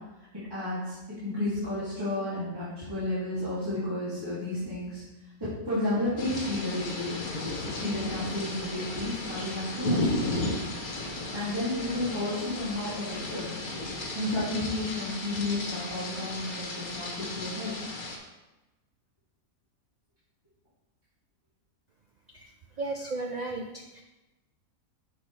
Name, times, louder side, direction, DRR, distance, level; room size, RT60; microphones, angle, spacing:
voice 1, 0.5-5.0 5.4-7.2 7.8-10.3 11.3-13.5 14.1-17.7, left 1 dB, 15° right, -13 dB, 2.5 m, -32 dB
sound 1, 6.2-18.2, left 2 dB, 85° left, 1.6 m, -34 dB
voice 2, 22.8-24.0, right 2 dB, 85° right, 2 dB, 0.3 m, -35 dB
7.8 x 6.7 x 3.2 m, 1.1 s
omnidirectional pair, 1.5 m